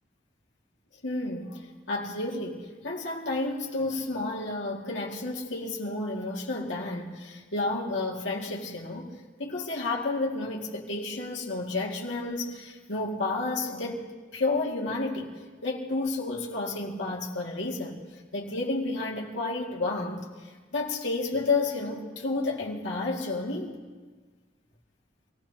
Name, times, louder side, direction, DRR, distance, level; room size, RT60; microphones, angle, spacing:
voice 1, 1.0-14.0 14.3-15.3 15.6-18.0 18.3-20.2 20.7-23.8, left 2 dB, 90° left, -2 dB, 2.3 m, -31 dB
26.5 x 17.0 x 2.9 m, 1.4 s
head